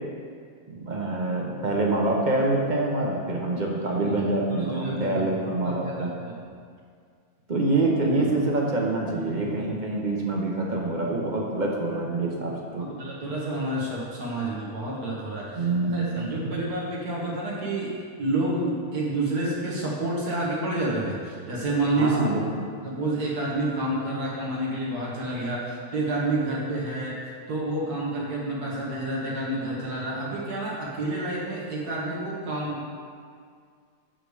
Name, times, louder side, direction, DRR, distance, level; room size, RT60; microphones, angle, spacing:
voice 1, 0.7-6.1 7.5-12.9 15.6-16.5 22.0-22.5, right 2 dB, 35° right, -1 dB, 0.8 m, -26 dB
voice 2, 4.0-5.3 5.6-6.3 12.8-22.2 22.8-27.2 27.5-32.9, right 2 dB, 85° right, -5 dB, 1.7 m, -29 dB
6.6 x 6.1 x 4.8 m, 2.1 s
omnidirectional pair, 1.6 m